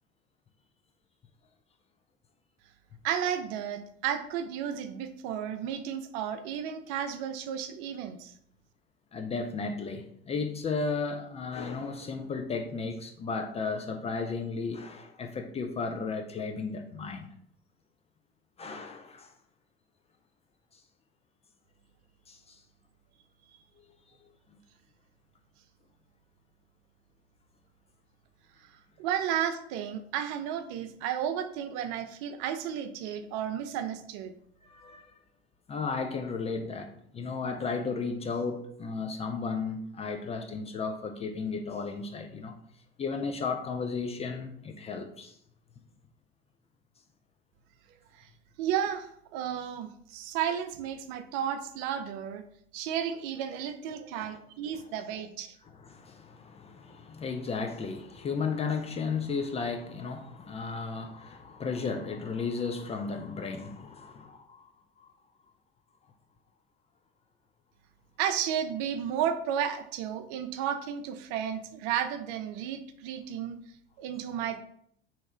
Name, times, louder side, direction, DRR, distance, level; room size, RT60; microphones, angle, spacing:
voice 1, 3.0-8.3 29.0-34.3 48.2-48.3 48.6-52.4 52.7-55.6 68.2-73.6 74.0-74.6, right 9 dB, 55° right, 9 dB, 0.5 m, -33 dB
voice 2, 9.1-17.3 18.6-19.3 22.3-22.6 34.6-35.1 35.7-42.6 43.0-45.4 54.1-54.3 54.7-54.8 55.6-64.7 65.0-65.1, left 4 dB, 20° left, 5 dB, 0.4 m, -34 dB
3.0 x 2.8 x 3.6 m, 0.68 s
figure-of-eight pair, 65°, 32 cm